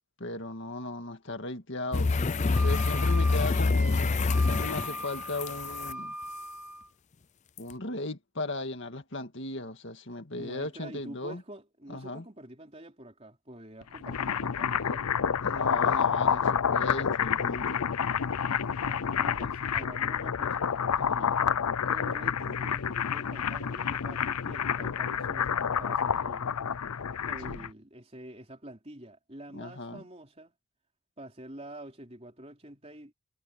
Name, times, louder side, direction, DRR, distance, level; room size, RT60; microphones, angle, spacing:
voice 1, 0.2-6.1 7.6-11.4 11.9-12.2 15.4-17.9 21.0-21.4 27.5-27.6 29.5-30.0, left 2 dB, 55° left, 2.1 m, -37 dB
sound 1, 1.9-5.9 7.6-7.7, left 3 dB, 30° left, 0.5 m, -26 dB
Wind instrument woodwind instrument, 2.5-6.9, right 1 dB, 5° right, 3.9 m, -40 dB
voice 2, 10.3-15.1 18.6-20.9 21.9-26.5 27.2-30.5 31.2-33.1, right 1 dB, 25° right, 4.1 m, -47 dB
sound 2, 13.8-27.7, left 7 dB, 85° left, 0.6 m, -29 dB
head